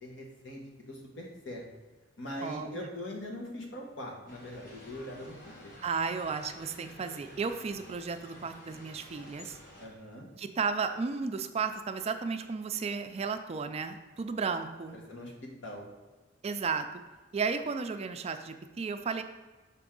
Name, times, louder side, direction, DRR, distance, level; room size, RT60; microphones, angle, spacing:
voice 1, 0.0-1.6 2.2-5.7 9.8-10.3 14.9-15.3 15.6-15.8, left 1 dB, 80° left, -1 dB, 1.4 m, -42 dB
voice 2, 2.4-2.9 5.8-9.6 10.4-15.0 16.4-16.9 17.3-19.2, right 5 dB, 35° right, 8 dB, 0.4 m, -34 dB
sound 1, 4.3-9.9, left 1 dB, 50° left, 1.5 m, -52 dB
6.0 x 4.5 x 3.8 m, 1.3 s
head